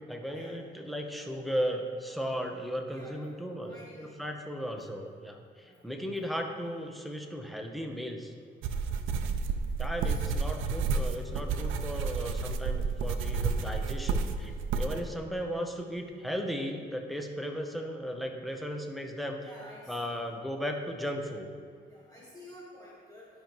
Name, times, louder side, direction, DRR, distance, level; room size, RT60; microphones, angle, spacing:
voice 1, 0.1-8.3 9.8-14.5 14.8-19.5 19.9-21.5, equal, ahead, 3 dB, 0.9 m, -36 dB
voice 2, 2.9-3.2 3.6-4.1 5.6-5.8 10.0-10.3 13.2-13.7 19.4-20.2 21.9-23.3, left 1 dB, 20° left, -6 dB, 1.5 m, -51 dB
sound 1, 8.6-15.0, right 4 dB, 85° right, 0.5 m, -31 dB
12.0 x 5.2 x 3.1 m, 2.2 s
cardioid pair, 90°, 20 cm